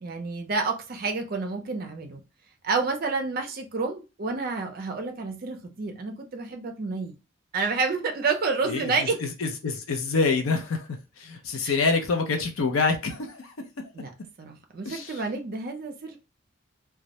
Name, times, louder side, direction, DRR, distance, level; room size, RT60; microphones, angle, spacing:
voice 1, 0.0-2.2 2.6-7.1 7.5-9.2 11.6-11.8 13.9-14.1 14.4-16.2, right 4 dB, 45° right, 0.4 m, -29 dB
voice 2, 8.6-13.5 14.9-15.2, left 4 dB, 80° left, 0.5 m, -27 dB
2.2 x 2.0 x 2.7 m
head